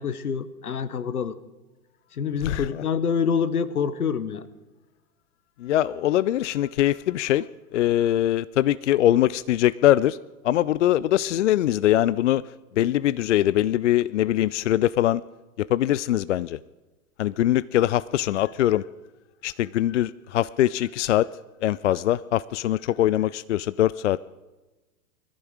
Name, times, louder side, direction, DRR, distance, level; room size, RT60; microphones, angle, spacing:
voice 1, 0.0-1.3 2.2-4.4, left 6 dB, 75° left, 16 dB, 1.2 m, -26 dB
voice 2, 5.6-7.4 7.7-10.2 10.4-12.4 12.8-15.2 15.6-16.6 17.2-18.8 19.4-21.3 21.6-24.2, left 13 dB, 55° left, 19 dB, 0.5 m, -22 dB
21.0 x 14.5 x 4.8 m, 1.1 s
figure-of-eight pair, 105°, 45 cm